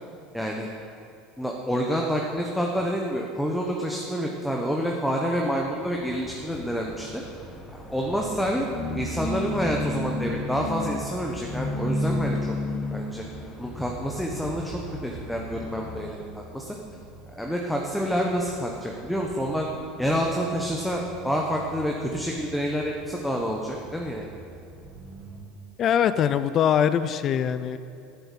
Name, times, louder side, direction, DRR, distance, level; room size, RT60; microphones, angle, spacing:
voice 1, 0.3-0.7 1.4-7.2 7.8-8.7 8.9-12.5 12.9-13.2 13.6-16.7 17.3-19.7 20.0-24.3, equal, ahead, 0 dB, 1.0 m, -28 dB
sound 1, 5.6-16.0, left 2 dB, 20° left, 1.5 m, -33 dB
sound 2, 6.1-25.4, right 3 dB, 30° right, 2.2 m, -46 dB
voice 2, 25.8-27.8, left 9 dB, 40° left, 13 dB, 0.4 m, -22 dB
9.9 x 6.9 x 7.4 m, 2.5 s
supercardioid pair, 110°, 0 cm